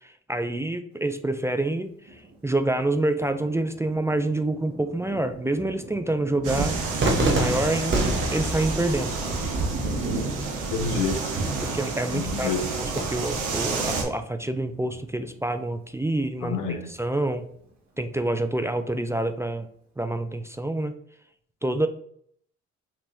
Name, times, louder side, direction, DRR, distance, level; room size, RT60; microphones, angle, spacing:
voice 1, 0.0-1.9 2.4-6.8 7.0-9.1 11.6-12.5 12.8-16.6 16.9-17.4 18.0-19.7 20.0-20.9 21.6-21.9, right 1 dB, 10° right, 8 dB, 0.4 m, -27 dB
Thunder, 2.0-16.4 16.9-17.0 17.3-17.9, right 2 dB, 60° right, 1.9 m, -39 dB
sound 1, 6.4-14.0, right 4 dB, 85° right, 1.3 m, -30 dB
Cheering / Fireworks, 7.0-13.0, right 2 dB, 40° right, 1.2 m, -29 dB
voice 2, 10.7-11.2 12.1-12.6 16.4-16.9, left 5 dB, 90° left, 5 dB, 1.0 m, -28 dB
5.8 x 3.4 x 2.7 m, 0.64 s
cardioid pair, 90°, 30 cm